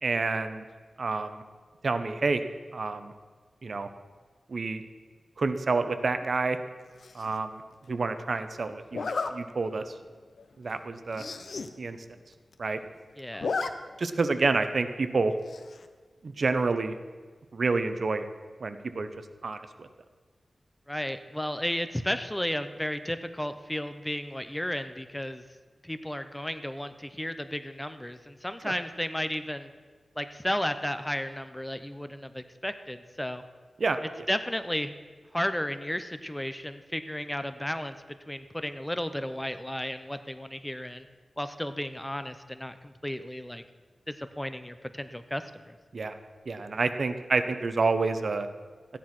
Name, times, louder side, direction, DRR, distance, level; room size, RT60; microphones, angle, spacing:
voice 1, 0.0-0.6 1.0-1.4 1.8-2.4 2.7-3.1 3.6-3.9 4.5-4.8 5.4-6.6 7.1-7.6 7.9-9.9 10.6-11.2 11.8-12.0 12.6-12.8 13.4-13.5 14.0-15.3 16.2-16.9 17.5-18.2 18.6-19.1 19.4-19.9 28.6-28.7 33.8-34.0 45.9-46.1 46.5-48.5, right 3 dB, 60° right, 10 dB, 0.8 m, -28 dB
Zipper (clothing), 7.0-7.4 8.9-9.3 9.9-10.1 10.4-10.5 10.7-10.8 11.1-11.7 12.1-12.2 12.3-12.9 13.2-13.7 14.0-14.1 15.5-15.9, left 4 dB, 70° left, 0.8 m, -33 dB
voice 2, 13.2-13.5 20.9-25.4 25.8-29.7 30.2-33.4 34.3-34.9 35.3-37.9 38.3-41.1 41.4-43.6 44.1-45.8, left 1 dB, 10° left, 10 dB, 0.7 m, -33 dB
14.5 x 10.0 x 6.0 m, 1.5 s
wide cardioid pair, 100°, 0 cm